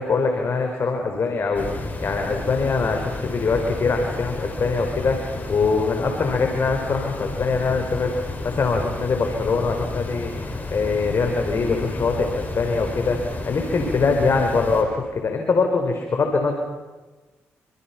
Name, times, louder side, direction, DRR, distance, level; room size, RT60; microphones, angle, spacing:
voice 1, 0.0-16.5, left 4 dB, 50° left, 4 dB, 4.3 m, -23 dB
sound 1, 1.5-14.8, left 2 dB, 35° left, 6.6 m, -32 dB
28.0 x 27.0 x 5.9 m, 1.2 s
supercardioid pair, 60°, 5 cm